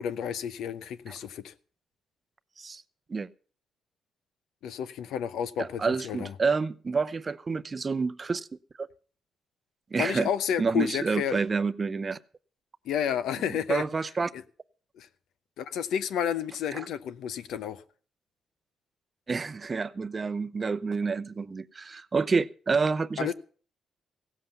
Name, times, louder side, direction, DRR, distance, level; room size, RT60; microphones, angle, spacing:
voice 1, 0.0-1.5 4.6-6.3 10.0-11.4 12.9-13.8 14.3-14.4 15.0-15.1 15.6-17.8 23.2-23.3, left 9 dB, 85° left, 0.8 m, -31 dB
voice 2, 5.6-8.5 8.8-8.9 9.9-10.3 10.6-12.2 13.5-14.3 16.7-16.9 19.3-23.3, right 4 dB, 30° right, 0.6 m, -28 dB
16.5 x 7.7 x 7.0 m
cardioid pair, 100°, 0 cm